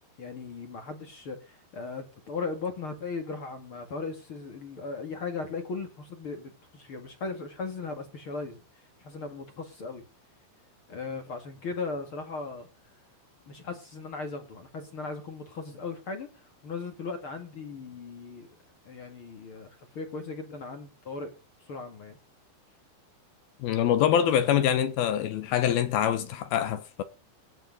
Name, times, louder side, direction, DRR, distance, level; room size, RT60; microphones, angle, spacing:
voice 1, 0.2-8.6 9.0-10.1 10.9-12.7 13.5-18.5 18.8-21.3 21.6-22.2, left 4 dB, 45° left, 1.8 m, -37 dB
voice 2, 23.6-27.0, left 10 dB, 75° left, 2.3 m, -25 dB
17.5 x 7.0 x 5.3 m
omnidirectional pair, 5.4 m